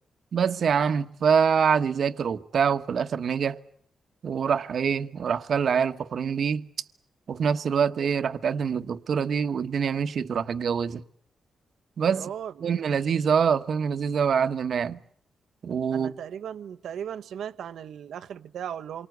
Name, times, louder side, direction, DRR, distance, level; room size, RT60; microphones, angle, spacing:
voice 1, 0.3-3.6 4.2-6.7 7.3-11.0 12.0-12.3 12.6-15.0 15.6-16.1, right 7 dB, 65° right, 1.2 m, -25 dB
voice 2, 12.0-12.5 15.9-19.1, right 9 dB, 85° right, 1.1 m, -37 dB
28.0 x 24.0 x 8.1 m
cardioid pair, 100°, 0 cm